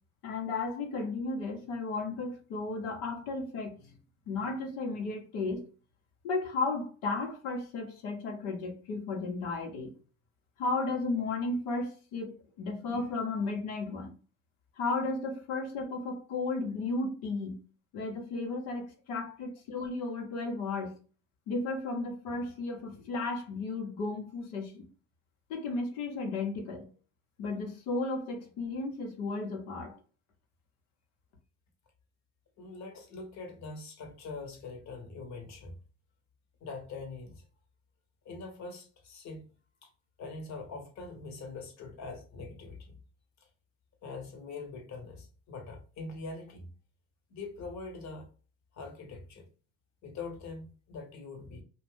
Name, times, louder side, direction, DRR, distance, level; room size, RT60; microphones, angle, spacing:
voice 1, 0.2-3.9 4.3-5.6 6.2-9.9 10.6-14.1 14.8-17.6 17.9-20.9 21.5-24.8 25.5-26.9 27.4-30.0, left 3 dB, 75° left, 0.9 m, -34 dB
voice 2, 32.6-35.7 36.6-37.4 38.2-39.5 39.8-39.9 40.2-43.0 43.4-43.5 44.0-46.7 47.3-48.3 48.7-49.5 50.0-51.6, left 3 dB, 55° left, 1.0 m, -43 dB
2.5 x 2.2 x 3.4 m
hypercardioid pair, 65°, 34 cm